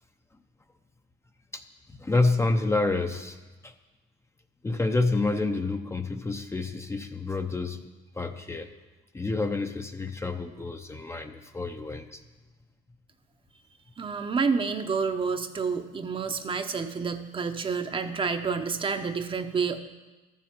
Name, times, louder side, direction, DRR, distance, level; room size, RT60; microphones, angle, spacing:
voice 1, 1.9-3.4 3.6-3.7 4.6-7.8 8.2-8.7 9.1-12.2, left 3 dB, 15° left, 6 dB, 0.7 m, -28 dB
voice 2, 14.0-19.8, right 5 dB, 30° right, 7 dB, 0.8 m, -29 dB
12.5 x 7.3 x 7.5 m, 1.2 s
cardioid pair, 110°, 17 cm